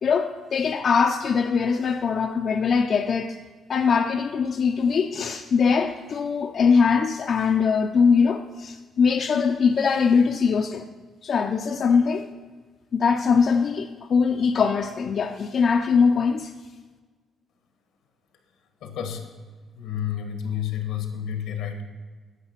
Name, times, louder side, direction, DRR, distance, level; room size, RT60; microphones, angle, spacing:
voice 1, 0.0-3.4 3.7-10.8 11.2-12.3 12.9-16.5, left 5 dB, 55° left, 0.4 m, -22 dB
voice 2, 18.8-19.2 19.7-21.8, left 9 dB, 90° left, 1.2 m, -30 dB
10.0 x 5.9 x 5.7 m
cardioid pair, 90°, 0 cm